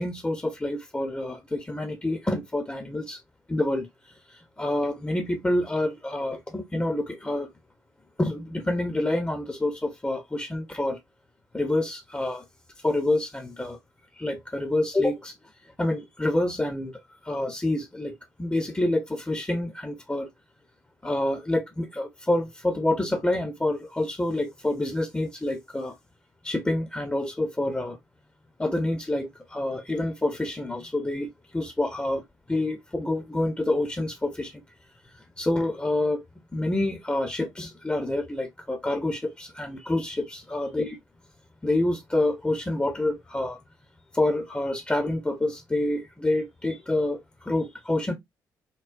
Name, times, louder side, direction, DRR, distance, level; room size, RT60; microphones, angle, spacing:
voice 1, 0.0-3.2 3.5-3.9 4.3-7.5 8.2-11.0 11.5-12.4 12.8-13.8 14.2-15.3 15.8-20.3 21.0-26.0 26.4-28.0 28.6-31.3 31.5-32.2 32.5-34.6 35.4-36.2 36.5-41.0 41.6-43.6 44.1-48.1, left 1 dB, 15° left, 0.6 m, -27 dB
3.8 x 2.1 x 2.4 m
figure-of-eight pair, 40°, 10 cm